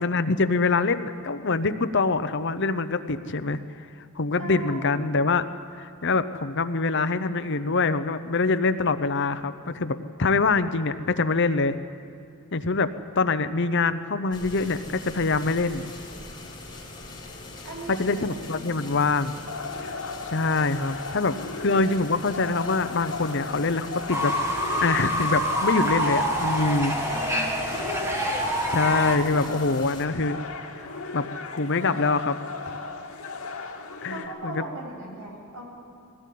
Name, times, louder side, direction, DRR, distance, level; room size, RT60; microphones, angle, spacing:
voice 1, 0.0-3.6 4.2-5.4 5.8-11.8 12.5-15.9 18.0-19.4 20.3-24.3 24.6-26.9 28.7-30.4 30.8-30.9 31.1-31.2 31.5-32.4 34.0-34.6, left 3 dB, 55° left, 11 dB, 0.8 m, -24 dB
voice 2, 4.4-5.0 17.6-18.2 18.5-19.1 26.8-27.6 34.1-35.7, right 1 dB, 60° right, -2 dB, 7.9 m, -38 dB
sound 1, 14.3-30.1, left 2 dB, 20° left, 3.6 m, -42 dB
sound 2, 19.5-34.3, left 4 dB, 75° left, 2.4 m, -36 dB
Fowl / Bird, 24.1-29.2, equal, 10° right, 1.9 m, -26 dB
21.5 x 17.0 x 8.5 m, 2.5 s
head